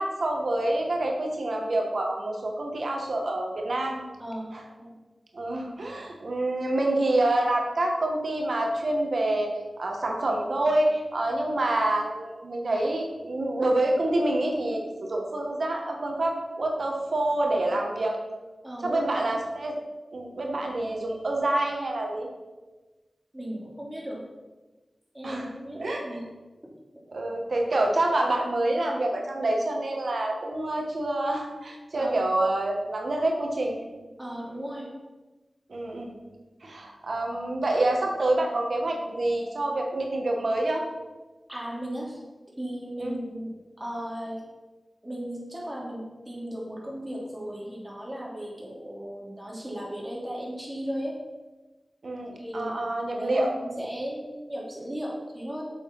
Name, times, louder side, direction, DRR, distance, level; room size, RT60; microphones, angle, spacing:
voice 1, 0.0-4.0 4.5-4.6 5.3-9.5 9.8-18.2 18.8-19.8 20.1-22.3 25.2-26.2 27.1-33.8 35.7-36.1 36.6-40.8 43.0-43.1 52.0-53.5, right 1 dB, 70° right, 1 dB, 1.7 m, -27 dB
voice 2, 4.2-4.5 4.8-4.9 18.6-19.4 23.3-24.2 25.1-26.2 31.9-32.2 34.2-34.9 41.5-42.2 42.6-43.5 43.8-44.4 45.0-51.2 52.3-52.7 53.1-55.6, equal, 15° right, -4 dB, 3.4 m, -36 dB
7.6 x 7.0 x 5.6 m, 1.2 s
wide cardioid pair, 55°, 0 cm